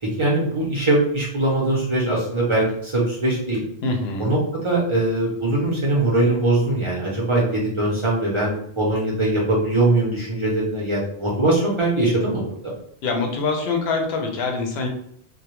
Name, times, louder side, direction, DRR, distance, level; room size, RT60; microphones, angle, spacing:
voice 1, 0.0-3.6 4.2-12.7, right 2 dB, 35° right, -4 dB, 0.5 m, -21 dB
voice 2, 3.8-4.3 13.0-14.9, left 3 dB, 85° left, 2 dB, 0.8 m, -24 dB
2.2 x 2.0 x 2.9 m, 0.67 s
omnidirectional pair, 1.0 m